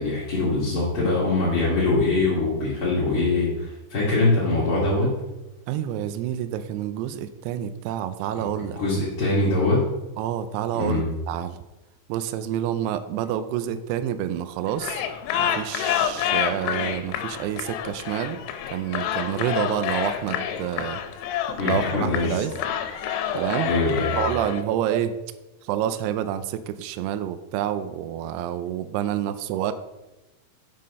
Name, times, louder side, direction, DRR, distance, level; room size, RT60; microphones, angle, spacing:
voice 1, 0.0-5.1 8.7-9.9 10.7-11.1 21.6-22.4 23.6-24.1, left 2 dB, 40° left, -9 dB, 2.2 m, -23 dB
voice 2, 5.7-8.8 10.2-11.6 12.1-15.0 15.4-18.4 18.7-21.0 21.6-22.6 23.3-23.7 24.2-25.2 25.6-29.7, right 11 dB, 85° right, 10 dB, 2.4 m, -28 dB
sound 1, 14.7-24.6, left 9 dB, 85° left, 3.1 m, -28 dB
7.6 x 7.6 x 5.4 m, 1.0 s
omnidirectional pair, 5.3 m